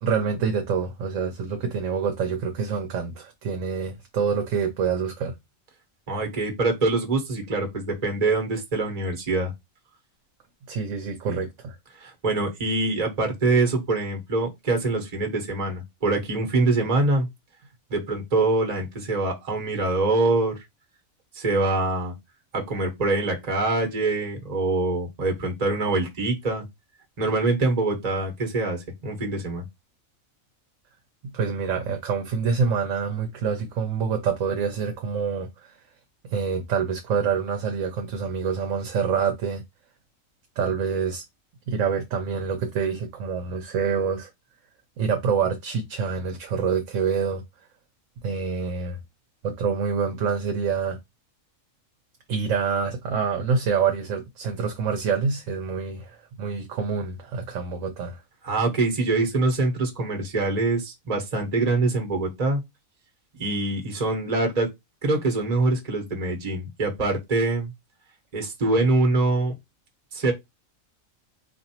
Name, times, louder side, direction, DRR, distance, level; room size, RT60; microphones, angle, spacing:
voice 1, 0.0-5.3 10.7-11.8 31.2-35.7 36.2-39.6 40.6-41.2 41.7-44.3 45.0-47.4 48.2-49.0 49.4-51.0 52.3-58.2, right 6 dB, 70° right, 1.0 m, -26 dB
voice 2, 6.1-9.5 11.3-11.4 12.0-17.3 17.9-20.6 21.3-22.1 22.5-26.6 27.2-29.6 58.4-62.6 63.4-64.7 65.0-67.7 68.3-69.5 70.1-70.3, right 2 dB, 30° right, 1.1 m, -24 dB
4.2 x 2.5 x 2.8 m
omnidirectional pair, 1.4 m